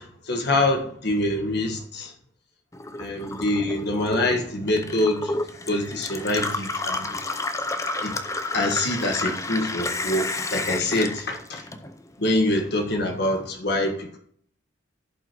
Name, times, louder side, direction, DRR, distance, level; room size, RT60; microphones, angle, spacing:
voice 1, 0.0-2.1 3.0-5.3 5.7-7.2 8.0-8.2 8.5-11.6 12.2-14.2, left 1 dB, 55° left, 1.5 m, -25 dB
Gurgling / Water tap faucet / Sink (filling or washing), 2.7-12.2 12.6-13.4, left 2 dB, 15° left, 0.6 m, -31 dB
15.0 x 5.5 x 3.0 m
head